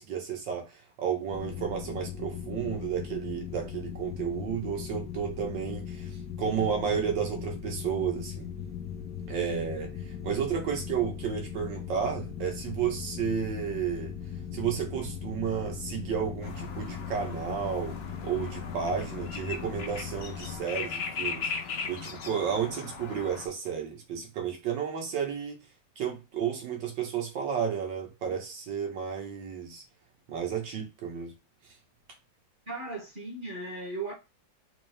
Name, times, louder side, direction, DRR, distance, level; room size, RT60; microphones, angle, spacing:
voice 1, 0.0-6.1 6.4-8.5 9.3-14.1 14.5-18.0 18.2-21.5 21.9-25.6 26.0-29.8 30.3-31.3, right 7 dB, 90° right, 1.8 m, -32 dB
sound 1, 1.3-20.6, left 8 dB, 70° left, 0.9 m, -39 dB
sound 2, 16.4-23.5, left 5 dB, 85° left, 0.5 m, -38 dB
voice 2, 32.7-34.1, right 2 dB, 45° right, 0.7 m, -37 dB
4.2 x 2.7 x 3.2 m
omnidirectional pair, 1.9 m